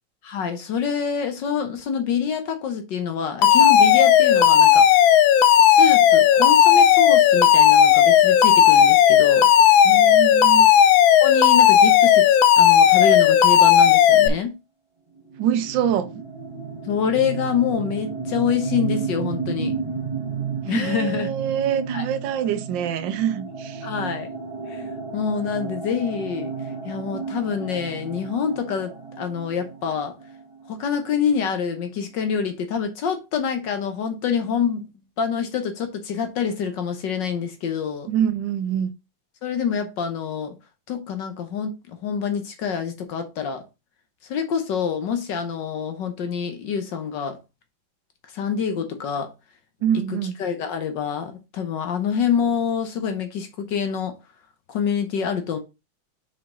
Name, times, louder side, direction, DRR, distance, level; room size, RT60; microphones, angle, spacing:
voice 1, 0.2-5.0 5.4-9.5 11.2-14.6 16.9-19.8 20.7-21.3 21.9-22.0 23.8-24.3 24.7-26.5 26.8-30.2 30.7-34.9 35.2-38.1 39.4-40.5 40.9-43.6 44.3-47.4 48.3-49.3 49.9-54.1 54.7-55.6, left 7 dB, 70° left, 1.6 m, -26 dB
Alarm, 3.4-14.3, left 9 dB, 85° left, 1.5 m, -14 dB
voice 2, 9.8-10.7 15.4-16.1 20.7-23.9 38.1-38.9 49.8-50.3, right 9 dB, 75° right, 1.4 m, -25 dB
sound 1, 15.3-30.9, right 5 dB, 25° right, 0.7 m, -32 dB
5.8 x 4.9 x 3.7 m
omnidirectional pair, 2.1 m